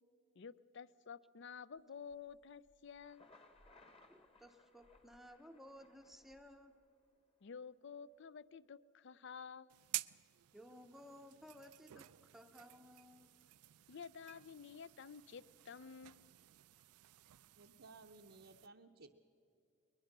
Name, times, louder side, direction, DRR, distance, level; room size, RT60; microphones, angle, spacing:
voice 1, 0.4-3.3 7.4-9.7 13.9-16.3, left 6 dB, 55° left, 18 dB, 0.4 m, -52 dB
sound 1, 1.7-5.3 5.6-6.8, equal, 85° left, 1.6 m, -76 dB
Thunder, 2.9-6.8, left 2 dB, 25° left, 1.3 m, -66 dB
voice 2, 4.1-6.8 10.5-13.3, equal, ahead, 6 dB, 0.7 m, -58 dB
sound 2, 9.7-18.7, right 18 dB, 90° right, 0.4 m, -51 dB
voice 3, 17.6-19.3, right 3 dB, 55° right, 2 dB, 0.7 m, -59 dB
21.5 x 21.0 x 6.0 m, 2.6 s
head